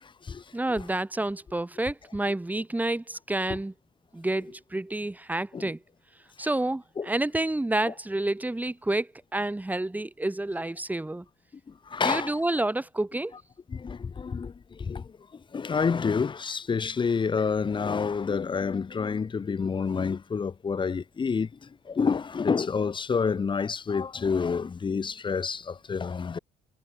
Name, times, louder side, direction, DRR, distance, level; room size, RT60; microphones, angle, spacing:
voice 1, 0.0-0.4 5.5-5.7 7.0-7.1 7.9-8.0 11.9-12.4 13.7-26.4, left 5 dB, 30° left, 1.8 m, -28 dB
voice 2, 0.5-3.7 4.1-5.8 6.4-11.2 12.0-13.3, right 2 dB, 10° right, 4.1 m, -29 dB
cardioid pair, 110°, 17 cm